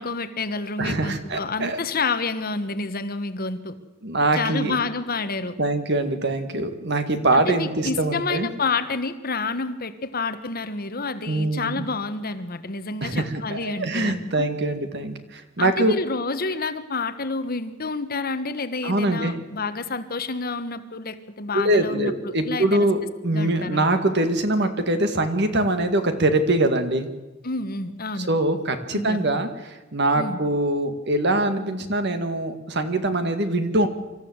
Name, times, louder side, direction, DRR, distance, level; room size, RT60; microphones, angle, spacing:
voice 1, 0.0-3.7 4.4-5.5 7.3-14.5 15.6-22.9 23.3-23.8 27.4-28.3 28.9-29.3 30.1-30.4, left 3 dB, 50° left, 10 dB, 1.4 m, -29 dB
voice 2, 0.8-1.8 4.0-4.7 5.6-8.5 11.3-11.8 13.0-15.9 18.8-19.3 21.5-27.1 28.2-33.9, right 2 dB, 55° right, 8 dB, 2.1 m, -23 dB
25.5 x 14.0 x 8.1 m, 1.1 s
head